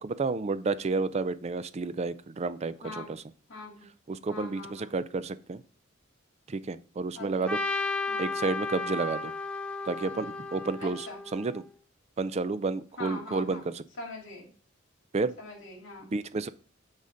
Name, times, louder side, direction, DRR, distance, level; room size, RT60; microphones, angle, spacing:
voice 1, 0.0-3.2 4.1-5.6 6.5-7.6 8.2-9.3 9.9-11.6 12.2-13.8 15.1-15.3 16.1-16.5, right 3 dB, 30° right, 14 dB, 0.4 m, -31 dB
voice 2, 3.5-3.9 4.3-4.9 7.2-7.5 8.1-8.3 10.8-11.2 13.0-13.6 14.0-14.5 15.4-16.1, left 3 dB, 70° left, -2 dB, 2.3 m, -42 dB
Trumpet, 7.5-11.6, left 3 dB, 5° left, 0.6 m, -34 dB
9.5 x 4.1 x 3.8 m, 0.40 s
head